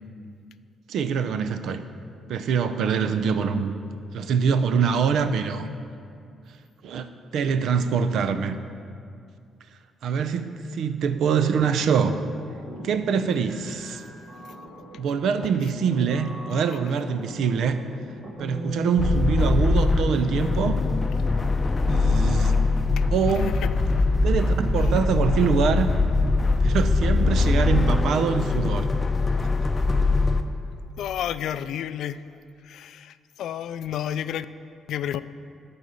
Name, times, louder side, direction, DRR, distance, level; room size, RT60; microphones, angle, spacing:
voice 1, 0.9-1.8 2.3-3.7 4.1-5.7 6.8-8.6 10.0-12.2 12.8-14.0 15.0-17.8 18.4-20.8 21.7-22.6 23.1-23.6 24.2-25.9 26.6-28.9 29.4-29.5, right 6 dB, 75° right, 10 dB, 0.6 m, -24 dB
sound 1, 11.9-21.4, left 1 dB, 45° right, 1.6 m, -38 dB
sound 2, 19.0-30.4, left 3 dB, 30° left, 0.6 m, -22 dB
voice 2, 31.0-32.2 32.7-34.5 34.9-35.2, left 10 dB, 75° left, 14 dB, 0.3 m, -31 dB
11.5 x 4.2 x 7.8 m, 2.3 s
cardioid pair, 90°, 0 cm